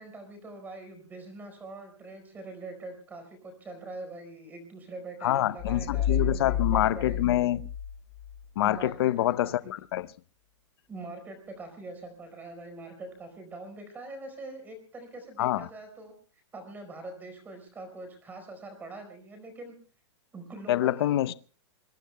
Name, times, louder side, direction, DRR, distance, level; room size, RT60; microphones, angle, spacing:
voice 1, 0.0-7.2 8.6-9.7 10.9-16.1 16.5-19.8 20.3-21.2, right 2 dB, 10° right, 4.5 m, -43 dB
voice 2, 5.2-7.6 8.6-10.1 15.4-15.7 20.7-21.3, left 13 dB, 55° left, 0.7 m, -26 dB
sound 1, 5.6-8.4, left 8 dB, 30° left, 6.3 m, -30 dB
28.0 x 22.5 x 2.2 m
supercardioid pair, 170°, 15 cm